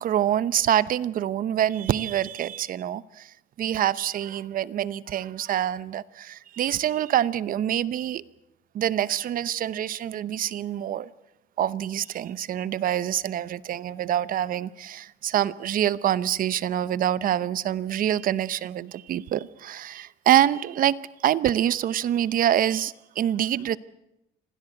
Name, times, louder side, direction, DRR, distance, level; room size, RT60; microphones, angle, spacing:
voice 1, 0.0-3.3 3.6-8.2 8.7-11.1 11.6-23.8, right 11 dB, 55° right, 0.9 m, -26 dB
26.0 x 17.0 x 7.9 m
cardioid pair, 110°, 17 cm